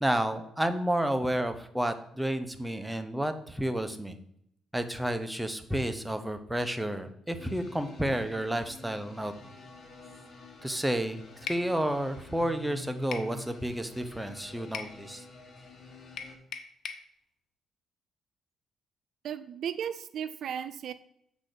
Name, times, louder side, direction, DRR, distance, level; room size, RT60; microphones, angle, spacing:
voice 1, 0.0-4.2 4.7-9.3 10.6-11.2 11.5-15.2, right 1 dB, 5° right, 8 dB, 0.8 m, -31 dB
sound 1, 7.4-16.4, left 2 dB, 50° left, 1.7 m, -48 dB
sound 2, 11.5-11.7 13.1-13.3 14.7-15.0 16.2-17.1, left 6 dB, 65° left, 0.7 m, -38 dB
voice 2, 19.2-20.9, right 8 dB, 70° right, 12 dB, 0.4 m, -35 dB
7.2 x 4.1 x 6.7 m, 0.72 s
cardioid pair, 90°, 0 cm